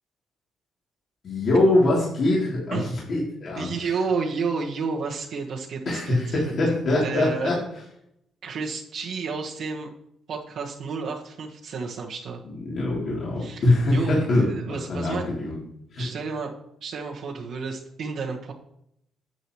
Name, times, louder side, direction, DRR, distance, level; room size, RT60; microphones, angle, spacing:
voice 1, 1.2-3.7 5.8-7.5 12.4-14.5 14.9-15.6 15.9-16.1, left 2 dB, 55° left, -5 dB, 3.1 m, -23 dB
voice 2, 3.5-6.5 7.0-7.6 8.4-9.9 10.3-12.4 13.4-13.6 13.9-15.3 15.9-16.5 16.8-18.5, right 5 dB, 70° right, -3 dB, 1.4 m, -31 dB
10.5 x 7.9 x 3.1 m, 0.76 s
cardioid pair, 90°, 0 cm